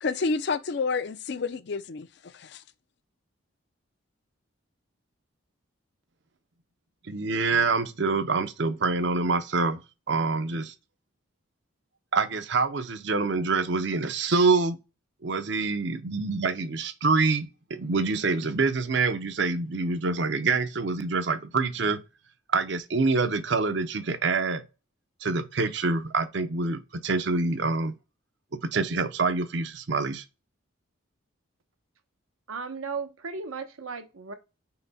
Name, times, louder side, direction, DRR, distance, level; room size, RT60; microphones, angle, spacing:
voice 1, 0.0-2.1 2.4-2.6, left 4 dB, 55° left, 0.4 m, -29 dB
voice 2, 7.1-9.8 10.1-10.7 12.1-14.8 15.2-22.0 22.5-24.6 25.2-27.9 28.6-30.2, right 4 dB, 55° right, 0.6 m, -26 dB
voice 3, 32.5-34.3, right 5 dB, 85° right, 0.9 m, -35 dB
5.7 x 2.2 x 4.0 m
head